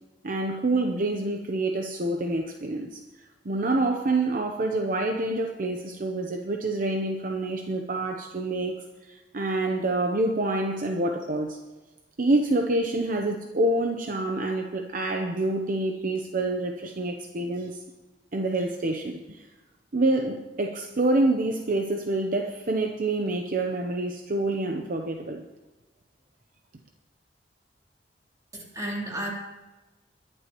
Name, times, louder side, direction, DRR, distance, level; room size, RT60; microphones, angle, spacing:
voice 1, 0.2-3.0 3.4-11.6 12.2-17.8 18.3-19.5 19.9-25.4, right 2 dB, 50° right, 4 dB, 0.8 m, -27 dB
voice 2, 28.5-29.3, right 1 dB, 20° right, -3 dB, 3.4 m, -32 dB
21.5 x 11.0 x 3.0 m, 1.2 s
head